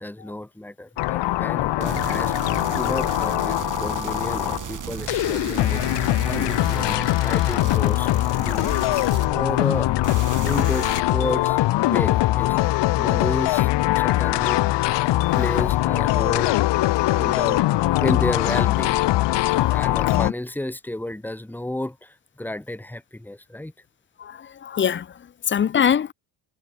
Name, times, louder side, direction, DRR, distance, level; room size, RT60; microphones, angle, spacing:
voice 1, 0.0-5.8 6.2-8.8 9.3-9.9 10.4-12.6 13.0-13.7 14.0-14.6 15.4-16.5 17.2-17.6 18.0-19.0 19.7-23.7, left 1 dB, 5° left, 3.5 m, -32 dB
sound 1, 1.0-4.7 5.1-20.3, left 16 dB, 90° left, 1.2 m, -22 dB
sound 2, 1.8-9.8 10.0-11.0, right 9 dB, 50° right, 5.2 m, -35 dB
voice 2, 24.2-26.1, left 8 dB, 30° left, 0.5 m, -24 dB
cardioid pair, 165°, 41 cm